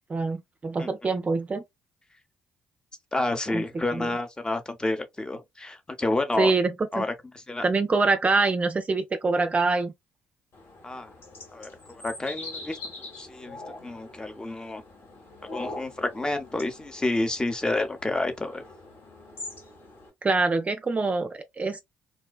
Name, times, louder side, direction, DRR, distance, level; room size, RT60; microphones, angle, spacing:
voice 1, 0.1-1.6 3.5-3.6 3.9-4.1 6.4-7.1 7.6-9.9 20.2-21.8, right 3 dB, 30° right, 0.4 m, -25 dB
voice 2, 3.1-6.5 6.9-7.1 7.5-7.6 10.8-11.1 11.5-12.8 13.2-13.6 13.8-14.8 15.5-18.6, left 2 dB, 15° left, 0.7 m, -29 dB
sound 1, 10.5-20.1, left 2 dB, 60° left, 1.3 m, -43 dB
2.4 x 2.2 x 2.3 m
hypercardioid pair, 50°, 5 cm